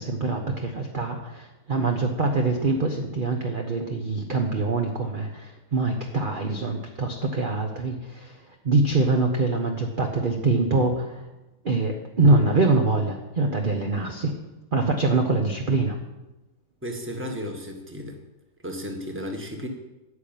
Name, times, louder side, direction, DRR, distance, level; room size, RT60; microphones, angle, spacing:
voice 1, 0.0-8.4 8.6-11.2 11.6-14.3 14.7-16.0, right 3 dB, 35° right, 2 dB, 1.0 m, -24 dB
voice 2, 16.8-18.2 18.6-19.7, equal, 10° right, 3 dB, 1.4 m, -34 dB
9.7 x 6.7 x 9.0 m, 1.0 s
omnidirectional pair, 1.8 m